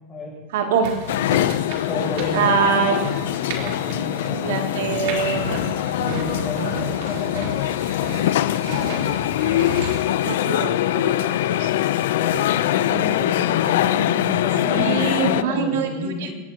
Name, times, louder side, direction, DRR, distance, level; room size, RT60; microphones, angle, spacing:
voice 1, 0.5-1.0 2.3-3.0 4.3-5.7 6.6-6.8 10.2-11.7 14.6-16.3, right 6 dB, 90° right, 1 dB, 2.7 m, -24 dB
sound 1, 0.8-10.0, right 3 dB, 60° right, 3.9 m, -34 dB
sound 2, 1.1-15.4, left 13 dB, 75° left, 0.6 m, -23 dB
voice 2, 1.9-4.8 6.0-7.7 8.5-9.1 12.2-16.3, left 2 dB, 15° left, -5 dB, 7.8 m, -31 dB
24.0 x 19.5 x 3.0 m, 1.2 s
supercardioid pair, 175°, 0 cm